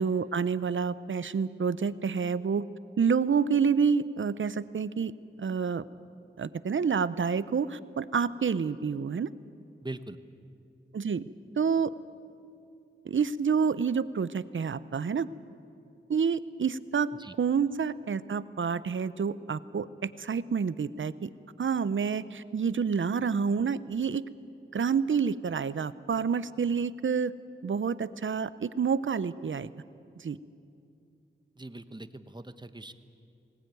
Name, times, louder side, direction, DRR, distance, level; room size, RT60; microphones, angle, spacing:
voice 1, 0.0-2.6 3.0-5.1 5.4-5.8 6.4-9.3 10.9-11.2 11.6-11.9 13.0-15.3 16.1-17.1 17.4-21.3 21.6-24.2 24.7-27.3 27.6-29.7 30.2-30.4, right 6 dB, 65° right, 16 dB, 0.7 m, -28 dB
voice 2, 9.8-10.2 17.1-17.3 31.6-32.9, right 2 dB, 20° right, 10 dB, 1.2 m, -41 dB
19.5 x 19.0 x 9.3 m, 2.5 s
cardioid pair, 45°, 21 cm